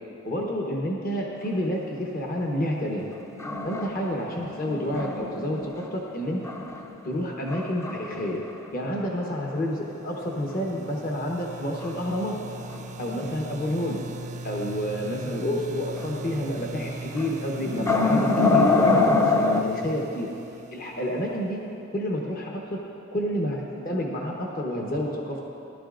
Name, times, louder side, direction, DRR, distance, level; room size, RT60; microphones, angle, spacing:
voice 1, 0.2-3.0 3.6-6.4 7.0-8.4 8.7-12.4 13.0-14.0 14.4-20.3 20.7-21.6 21.9-22.8 23.1-25.4, equal, 45° left, -1 dB, 1.0 m, -29 dB
sound 1, 2.8-5.9 6.4-7.0 7.5-8.6 8.9-9.0 9.5-9.6 11.8-11.9 12.4-13.7 14.1-14.2 15.9-16.3 16.6-16.8 17.2-19.6, left 3 dB, 15° left, 0.5 m, -25 dB
sound 2, 9.8-21.6, right 3 dB, 35° right, 0.5 m, -40 dB
18.5 x 12.0 x 2.5 m, 2.8 s
head